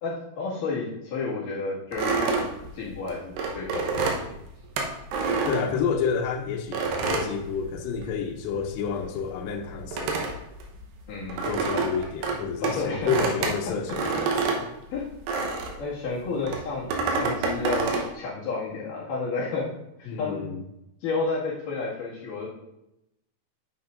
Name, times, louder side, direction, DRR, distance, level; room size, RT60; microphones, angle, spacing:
voice 1, 0.0-2.5 2.7-4.3 5.2-5.4 11.1-11.4 11.7-11.9 12.6-13.1 13.6-13.7 14.9-15.1 15.8-19.7 20.0-20.4 21.0-22.5, left 4 dB, 60° left, -6 dB, 3.2 m, -31 dB
sound 1, 1.9-6.2 6.7-8.2 8.5-15.9 16.4-18.1, right 4 dB, 85° right, 3.0 m, -28 dB
voice 2, 5.5-10.3 11.4-14.7 20.1-20.6, left 6 dB, 90° left, 3 dB, 2.8 m, -30 dB
10.0 x 6.5 x 2.5 m, 0.85 s
omnidirectional pair, 4.8 m